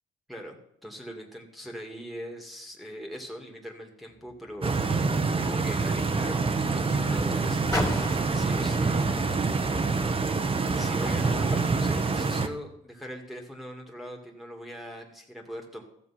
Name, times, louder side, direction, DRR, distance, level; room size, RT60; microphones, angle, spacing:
voice 1, 0.3-4.8 5.4-8.0 8.3-9.3 10.7-15.8, equal, ahead, 2 dB, 2.1 m, -41 dB
Car, 4.1-10.7 11.5-11.6, left 2 dB, 15° left, 2.8 m, -39 dB
Stream, 4.6-12.5, right 4 dB, 25° right, 1.0 m, -26 dB
14.0 x 7.1 x 5.8 m, 0.74 s
cardioid pair, 90°, 20 cm